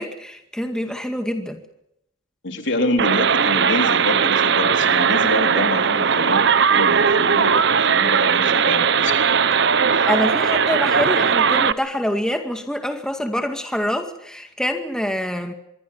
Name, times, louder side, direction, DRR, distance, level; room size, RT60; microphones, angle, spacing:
voice 1, 0.0-1.6 9.9-15.5, equal, 5° left, 5 dB, 2.1 m, -25 dB
voice 2, 2.4-6.4 6.7-9.2 9.9-10.1, left 1 dB, 65° left, 5 dB, 3.7 m, -27 dB
sound 1, 3.0-11.7, right 6 dB, 60° right, 0.9 m, -18 dB
25.5 x 23.0 x 5.7 m, 0.77 s
head